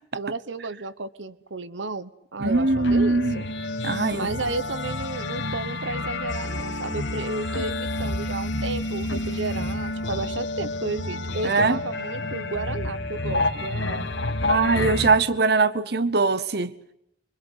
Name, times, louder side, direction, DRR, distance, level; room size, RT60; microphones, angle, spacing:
voice 1, 0.1-3.5 4.1-14.1, right 3 dB, 85° right, 1.1 m, -33 dB
sound 1, 2.4-15.2, left 2 dB, 80° left, 2.4 m, -29 dB
voice 2, 2.4-3.4 3.8-4.3 11.4-11.8 14.5-16.7, right 3 dB, 60° right, 1.0 m, -21 dB
26.0 x 24.5 x 8.1 m
head